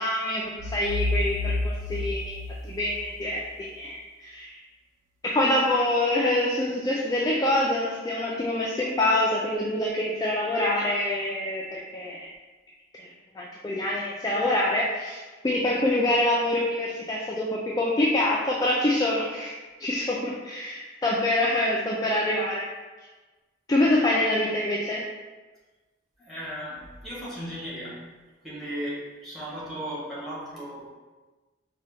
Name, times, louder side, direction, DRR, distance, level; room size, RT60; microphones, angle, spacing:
voice 1, 0.0-4.6 5.2-12.3 13.0-13.1 13.3-19.5 19.8-22.6 23.7-25.1, left 1 dB, 20° left, -4 dB, 0.3 m, -26 dB
sound 1, 0.6-3.4, left 2 dB, 90° right, 0.4 m, -30 dB
voice 2, 26.2-28.0 28.4-30.9, equal, ahead, -7 dB, 1.1 m, -36 dB
4.2 x 2.2 x 3.2 m, 1.3 s
head